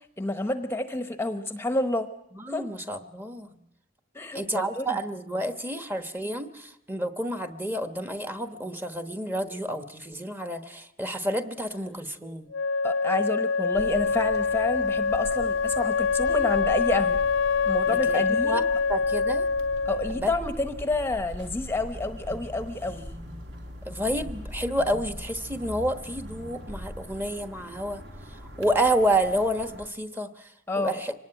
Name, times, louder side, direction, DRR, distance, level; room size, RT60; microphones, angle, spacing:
voice 1, 0.2-2.1 2.5-2.7 4.1-5.0 12.8-17.2 17.7-18.6 19.9-23.1 30.7-31.0, left 2 dB, 10° left, 8 dB, 0.9 m, -29 dB
voice 2, 2.4-3.6 4.3-12.5 17.9-18.6 18.9-19.5 20.2-20.3 23.8-28.0 28.6-30.5 30.8-31.1, right 1 dB, 10° right, 9 dB, 1.2 m, -29 dB
Wind instrument woodwind instrument, 12.5-20.2, left 5 dB, 70° left, 0.8 m, -25 dB
sound 1, 13.7-29.9, equal, 55° right, 2.6 m, -42 dB
sound 2, 21.7-26.7, equal, 40° right, 5.4 m, -49 dB
25.0 x 19.0 x 9.0 m, 0.80 s
head